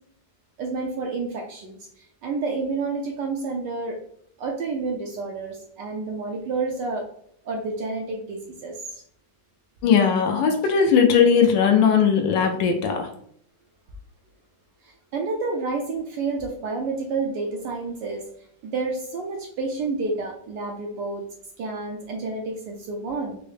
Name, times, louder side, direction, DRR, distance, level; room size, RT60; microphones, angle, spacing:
voice 1, 0.6-4.0 4.4-7.1 7.4-9.0 14.8-18.3 18.6-21.2 21.6-23.4, right 3 dB, 70° right, 0 dB, 1.1 m, -29 dB
voice 2, 9.8-13.1, left 6 dB, 75° left, 5 dB, 1.2 m, -18 dB
4.6 x 2.0 x 3.3 m, 0.66 s
omnidirectional pair, 2.2 m